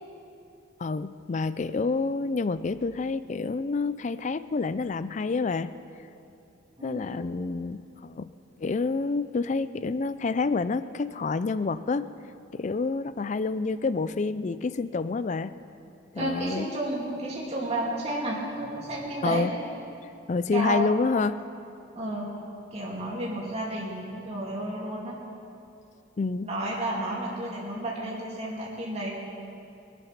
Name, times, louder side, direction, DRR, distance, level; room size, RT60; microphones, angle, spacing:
voice 1, 0.8-5.7 6.8-8.3 8.6-12.0 12.5-15.5 16.1-16.7 19.2-19.5 20.3-21.4 26.2-26.5, left 4 dB, 35° left, 14 dB, 0.4 m, -28 dB
voice 2, 6.8-7.2 16.2-19.5 20.5-20.9 21.9-22.3 22.7-25.2 26.4-29.1, right 1 dB, 30° right, -5 dB, 2.4 m, -32 dB
23.5 x 8.4 x 5.9 m, 2.7 s
head